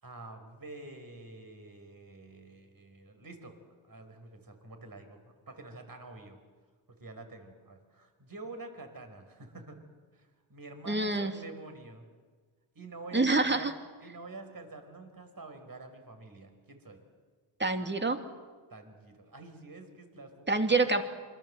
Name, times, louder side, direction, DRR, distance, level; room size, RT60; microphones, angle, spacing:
voice 1, 0.0-3.5 3.8-5.2 5.5-6.4 7.0-9.8 10.1-12.1 12.7-13.7 14.0-17.0 18.7-21.0, right 3 dB, 45° right, 6 dB, 4.9 m, -47 dB
voice 2, 10.9-11.3 13.1-13.7 17.6-18.2 20.5-21.0, right 3 dB, 20° right, 6 dB, 2.6 m, -26 dB
28.0 x 24.0 x 7.8 m, 1.5 s
cardioid pair, 60°, 48 cm